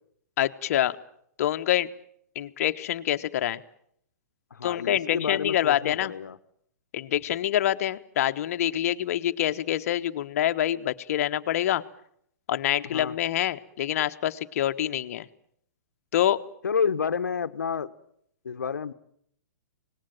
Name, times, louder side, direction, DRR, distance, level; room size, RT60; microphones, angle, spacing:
voice 1, 0.4-1.0 1.4-1.9 2.3-3.6 4.6-6.1 6.9-11.8 12.5-15.3 16.1-16.4, left 12 dB, 55° left, 10 dB, 1.2 m, -26 dB
voice 2, 4.5-6.4 12.9-13.2 16.6-17.9 18.4-18.9, left 6 dB, 85° left, 11 dB, 1.1 m, -29 dB
25.5 x 19.5 x 9.1 m, 0.70 s
hypercardioid pair, 130°, 9 cm